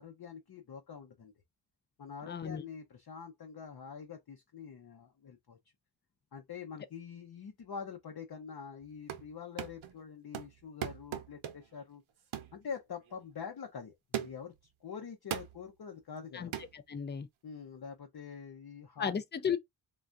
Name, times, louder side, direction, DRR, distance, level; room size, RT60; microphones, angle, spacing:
voice 1, 0.0-1.3 2.0-5.6 6.3-12.0 12.5-14.5 14.8-16.5 17.4-19.1, left 6 dB, 50° left, 0.8 m, -45 dB
voice 2, 2.3-2.6 16.3-16.5 16.9-17.3 19.0-19.6, left 7 dB, 25° left, 0.4 m, -34 dB
sound 1, 8.8-9.3 9.6-10.0 10.3-11.8 12.3-12.6 13.1-13.2 14.1-14.6 15.3-15.6 16.5-16.7, right 10 dB, 85° right, 0.8 m, -39 dB
3.3 x 2.4 x 2.4 m
wide cardioid pair, 120°, 47 cm